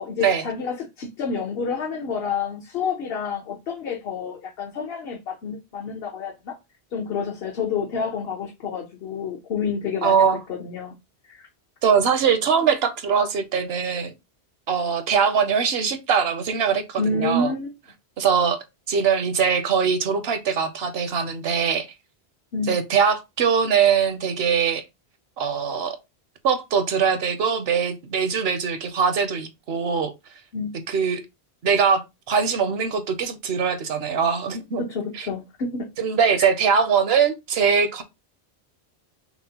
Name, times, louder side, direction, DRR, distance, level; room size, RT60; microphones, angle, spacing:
voice 1, 0.0-6.6 6.9-10.9 11.2-11.5 17.0-17.7 22.5-22.7 30.5-30.7 34.8-35.9, left 4 dB, 65° left, 1.0 m, -29 dB
voice 2, 10.0-10.4 11.8-14.1 14.7-17.5 18.2-18.6 18.9-21.9 22.7-24.8 25.4-26.0 26.4-30.1 30.9-31.2 31.6-32.0 32.3-34.8 36.0-38.0, right 6 dB, 70° right, 0.9 m, -22 dB
5.8 x 2.1 x 2.8 m
omnidirectional pair, 1.1 m